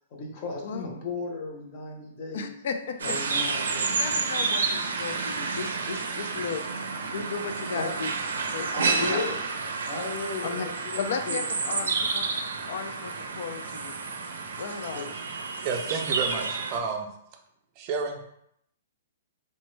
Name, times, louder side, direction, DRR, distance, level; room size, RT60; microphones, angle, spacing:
voice 1, 0.1-2.5 3.0-3.9 7.7-7.9 8.7-9.4 9.8-11.4 11.7-11.8 14.9-15.1, left 4 dB, 35° left, 0 dB, 0.7 m, -35 dB
voice 2, 2.3-3.1 3.8-6.6 7.1-8.2 8.5-8.7 9.0-9.2 10.4-10.7 11.0-12.3 12.7-14.0 14.6-15.1, left 5 dB, 60° left, 7 dB, 0.3 m, -34 dB
sound 1, 3.0-16.8, right 4 dB, 85° right, 0.4 m, -30 dB
voice 3, 15.6-17.1 17.8-18.2, right 5 dB, 30° right, 3 dB, 0.4 m, -30 dB
3.0 x 2.1 x 3.1 m, 0.74 s
hypercardioid pair, 160°, 0 cm